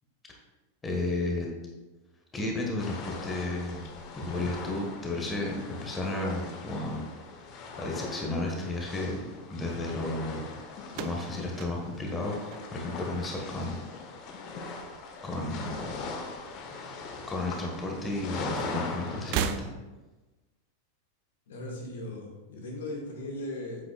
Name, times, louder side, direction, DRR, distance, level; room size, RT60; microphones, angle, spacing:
voice 1, 0.8-1.5 2.3-3.8 4.2-7.0 7.8-9.2 9.5-10.4 11.0-12.4 12.7-13.8 15.2-15.8 17.3-19.7, left 2 dB, 15° left, 0 dB, 1.5 m, -32 dB
sound 1, 2.8-19.4, left 3 dB, 40° left, 1.0 m, -40 dB
sound 2, 10.9-13.2 13.5-14.1 15.2-16.2 16.4-16.6 17.7-17.8 19.2-20.2, right 9 dB, 45° right, 0.4 m, -36 dB
voice 2, 21.5-23.8, left 1 dB, 60° left, 0 dB, 1.6 m, -38 dB
8.4 x 7.8 x 2.4 m, 1.1 s
figure-of-eight pair, 90°, 0 cm